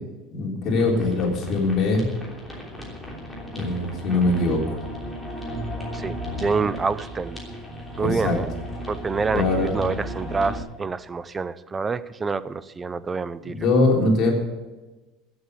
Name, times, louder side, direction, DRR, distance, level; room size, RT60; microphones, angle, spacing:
voice 1, 0.3-2.0 3.5-4.6 8.0-8.4 9.3-9.7 13.4-14.3, left 2 dB, 40° left, -1 dB, 3.7 m, -22 dB
sound 1, 0.7-10.6, equal, ahead, 3.2 m, -35 dB
voice 2, 5.9-7.4 8.0-8.5 8.9-13.5, right 4 dB, 15° right, 16 dB, 0.4 m, -27 dB
15.0 x 7.8 x 8.2 m, 1.2 s
cardioid pair, 160°, 0 cm